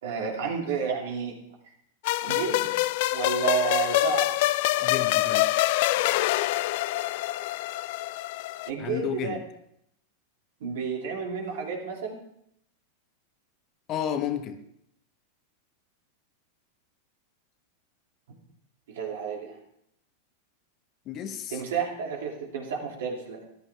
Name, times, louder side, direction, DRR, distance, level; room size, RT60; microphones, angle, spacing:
voice 1, 0.0-1.4 2.2-2.7 3.1-4.3 8.7-9.4 10.6-12.2 18.9-19.6 21.5-23.4, right 6 dB, 75° right, 0 dB, 2.7 m, -31 dB
sound 1, 2.0-8.7, left 17 dB, 60° left, 0.3 m, -25 dB
voice 2, 4.8-5.5 8.8-9.4 13.9-14.6 21.1-21.6, left 9 dB, 40° left, 8 dB, 1.2 m, -31 dB
14.0 x 11.0 x 3.5 m, 0.74 s
hypercardioid pair, 115°, 0 cm